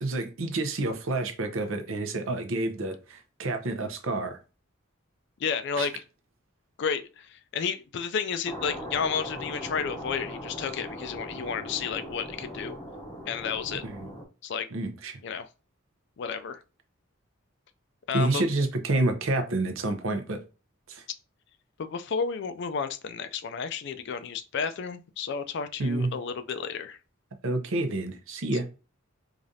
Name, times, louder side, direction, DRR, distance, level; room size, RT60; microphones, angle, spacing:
voice 1, 0.0-4.4 5.8-5.9 13.8-14.1 14.7-15.2 18.1-20.4 20.9-21.0 25.8-26.1 27.4-28.7, right 2 dB, 70° right, 0.7 m, -29 dB
voice 2, 5.4-6.0 6.8-12.8 13.3-13.8 14.4-14.7 15.2-15.5 16.2-16.6 18.1-18.4 21.8-27.0, left 6 dB, 55° left, 0.3 m, -32 dB
sound 1, 8.4-14.2, equal, 20° left, 0.7 m, -39 dB
4.9 x 2.4 x 2.7 m
head